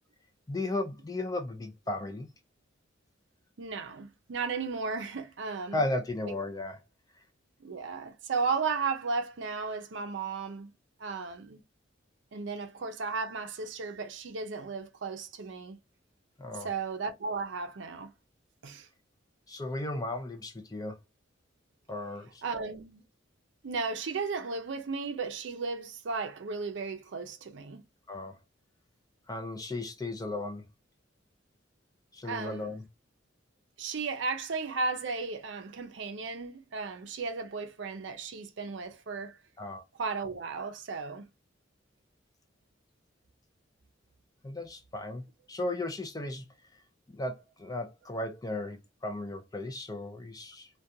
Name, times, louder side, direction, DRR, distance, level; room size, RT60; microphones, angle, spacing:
voice 1, 0.5-2.3 5.7-6.8 16.4-16.7 19.5-21.0 21.9-22.4 28.1-28.4 29.3-30.6 32.1-32.8 39.6-39.8 44.4-46.5 47.1-50.7, left 2 dB, 20° left, 0.4 m, -35 dB
voice 2, 3.6-5.8 7.6-10.7 11.0-11.6 12.3-15.8 16.6-18.1 18.6-18.9 22.4-23.0 23.6-27.8 32.2-32.7 33.8-39.4 40.0-41.2, right 4 dB, 65° right, 0.5 m, -35 dB
2.4 x 2.2 x 2.6 m
head